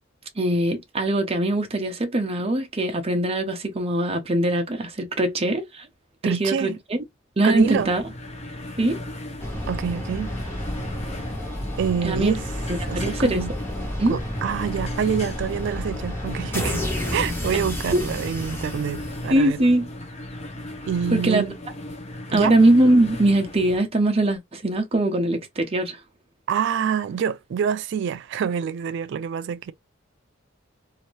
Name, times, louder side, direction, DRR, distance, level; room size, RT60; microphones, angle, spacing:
voice 1, 0.4-5.9 6.2-7.0 7.4-8.0 8.8-9.0 12.0-12.3 13.0-13.5 14.0-14.2 17.9-18.0 19.3-19.9 21.1-21.4 22.3-26.0, right 1 dB, 30° right, 0.7 m, -21 dB
voice 2, 6.2-6.8 7.4-7.9 9.7-10.3 11.8-12.4 12.9-13.5 14.1-16.8 17.1-19.6 20.9-21.6 22.3-22.6 26.5-29.7, right 7 dB, 60° right, 0.3 m, -26 dB
sound 1, 7.6-23.8, left 1 dB, 35° left, 0.7 m, -36 dB
sound 2, 9.4-19.7, equal, 10° left, 1.1 m, -31 dB
2.9 x 2.6 x 2.9 m
head